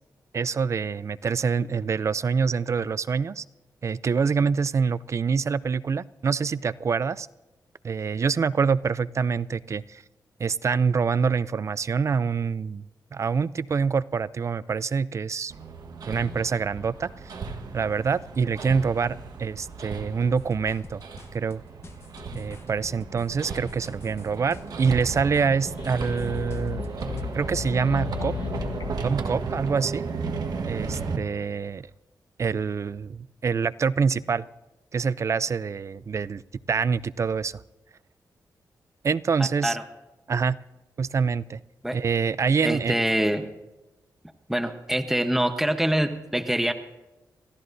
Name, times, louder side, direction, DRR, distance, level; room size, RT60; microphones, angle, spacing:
voice 1, 0.3-3.4 3.8-7.3 7.8-10.0 10.4-12.9 13.1-15.5 16.0-17.3 17.7-21.0 21.3-21.6 22.3-26.9 27.3-28.3 29.0-30.0 30.6-31.9 32.4-34.5 34.9-36.4 36.7-37.6 39.0-39.8 40.3-40.6 41.0-41.6 41.9-43.0, right 5 dB, 45° right, 18 dB, 0.4 m, -26 dB
Hammer, 15.5-31.2, right 4 dB, 70° right, 1.3 m, -35 dB
sound 1, 20.3-27.2, left 3 dB, 40° left, 1.1 m, -47 dB
sound 2, 25.6-29.2, left 8 dB, 75° left, 0.7 m, -34 dB
voice 2, 39.4-39.8 41.8-42.0 42.6-43.5 44.5-46.7, right 1 dB, 5° right, 7 dB, 0.9 m, -25 dB
27.5 x 14.5 x 2.6 m, 1.1 s
wide cardioid pair, 110°, 7 cm